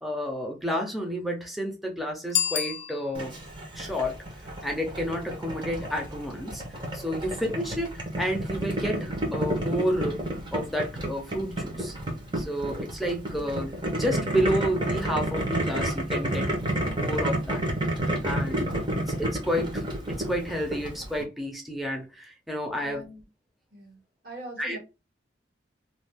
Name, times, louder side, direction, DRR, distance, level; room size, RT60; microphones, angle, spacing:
voice 1, 0.0-3.4 3.7-4.2 4.6-7.9 8.2-10.2 10.5-11.9 12.3-13.7 14.0-16.5 16.8-17.6 18.2-18.7 19.2-23.0 24.6-24.8, equal, ahead, 0.6 m, -30 dB
Bicycle bell, 2.3-3.5, left 8 dB, 40° left, 0.3 m, -29 dB
Boiling, 3.1-21.2, right 1 dB, 25° right, 0.9 m, -30 dB
voice 2, 22.8-23.3 23.7-24.8, right 1 dB, 55° right, 1.5 m, -44 dB
2.6 x 2.3 x 3.4 m
head